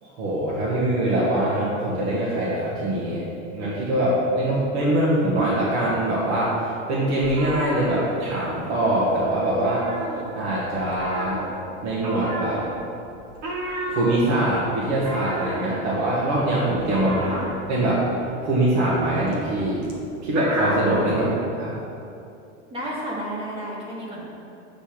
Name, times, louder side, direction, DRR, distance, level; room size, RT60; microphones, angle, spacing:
voice 1, 0.0-3.2 3.5-9.9 10.3-11.4 11.8-12.6 13.9-17.4 17.7-18.0 18.4-19.8 20.2-21.3 21.5-21.7, right 1 dB, 70° right, -8 dB, 1.6 m, -23 dB
sound 1, 7.2-8.7 9.0-9.2 9.5-10.6 10.9-21.0, right 1 dB, 40° right, 1.2 m, -32 dB
voice 2, 17.0-17.5 21.1-21.3 22.7-24.2, equal, 15° right, -5 dB, 1.0 m, -32 dB
7.9 x 3.4 x 6.0 m, 2.7 s
supercardioid pair, 170°, 36 cm